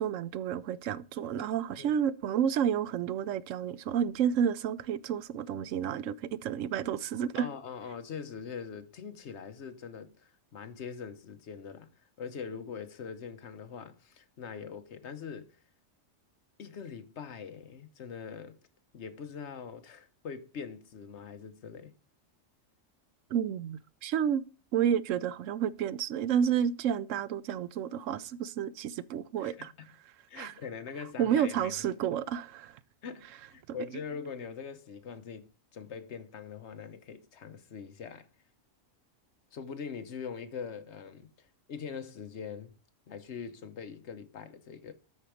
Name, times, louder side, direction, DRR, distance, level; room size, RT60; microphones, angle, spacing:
voice 1, 0.0-7.5 23.3-24.4 24.7-29.7 30.3-30.5 31.2-32.8, right 8 dB, 75° right, 1.0 m, -30 dB
voice 2, 7.4-15.6 16.6-18.6 18.9-21.9 29.4-29.9 30.3-31.9 33.0-38.3 39.5-42.7 43.1-44.9, left 6 dB, 60° left, 1.2 m, -43 dB
12.5 x 4.5 x 4.9 m
omnidirectional pair, 1.3 m